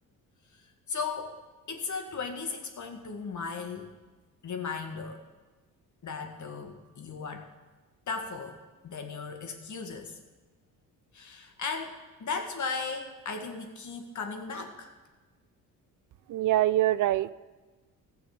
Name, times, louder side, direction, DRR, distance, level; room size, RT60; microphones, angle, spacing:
voice 1, 0.9-1.4 1.7-3.9 4.4-5.2 6.0-7.5 8.1-10.2 11.1-14.9, left 4 dB, 50° left, 5 dB, 2.0 m, -36 dB
voice 2, 16.3-17.3, right 14 dB, 55° right, 17 dB, 0.5 m, -24 dB
15.0 x 7.1 x 6.7 m, 1.3 s
supercardioid pair, 70°, 38 cm